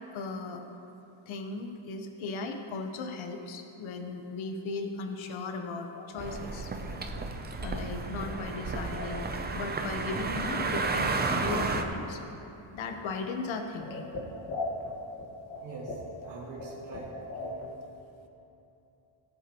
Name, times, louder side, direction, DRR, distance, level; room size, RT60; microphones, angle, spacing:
voice 1, 0.1-0.6 1.3-6.7 7.6-12.2 12.7-14.1, left 3 dB, 65° left, 5 dB, 1.1 m, -37 dB
sound 1, 5.9-9.4 9.6-10.3 10.6-10.7 11.0-12.1 12.4-12.8 13.1-13.2 13.4-17.7, left 2 dB, 50° left, 1.5 m, -41 dB
sound 2, 6.2-11.8, right 3 dB, 20° right, 0.5 m, -32 dB
voice 2, 15.6-17.1 17.4-17.7, right 3 dB, 70° right, -8 dB, 2.6 m, -43 dB
17.5 x 8.1 x 3.0 m, 2.9 s
cardioid pair, 140°, 49 cm